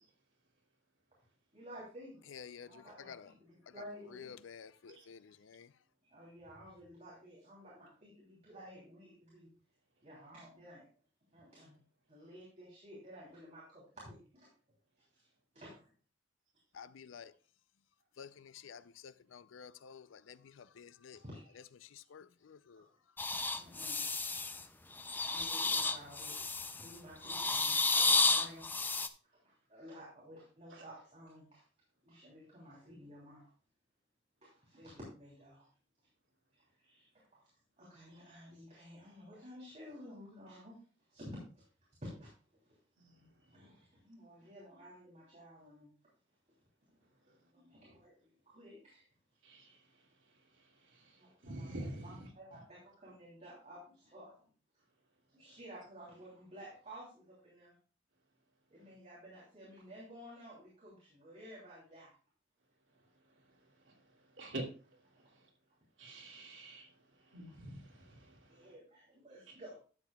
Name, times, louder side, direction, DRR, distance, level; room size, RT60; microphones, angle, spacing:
voice 1, 1.5-2.2 2.6-4.4 6.0-9.5 10.0-10.8 11.3-11.7 12.1-14.5 15.0-15.3 15.5-15.9 21.2-21.7 22.8-22.9 23.5-24.0 25.2-26.5 26.8-28.9 29.2-31.7 32.0-33.5 34.4-35.7 36.5-37.5 37.8-40.8 41.1-41.7 42.0-42.3 42.6-42.8 43.5-45.9 47.3-49.1 51.2-54.8 55.3-57.8 58.7-62.1 68.5-69.8, equal, 35° right, 3.1 m, -53 dB
voice 2, 2.3-3.3 3.8-3.9 4.1-5.7 16.7-17.3 18.2-21.2 21.8-22.9, left 7 dB, 85° left, 0.5 m, -52 dB
sound 1, 23.2-24.6 25.0-26.9 27.2-29.1, left 3 dB, 10° left, 0.4 m, -32 dB
voice 3, 49.4-49.8 50.9-51.0 51.4-52.2 64.4-64.6 66.0-66.9 67.3-68.4 69.5-69.6, right 1 dB, 80° right, 2.5 m, -46 dB
12.0 x 8.2 x 2.3 m
head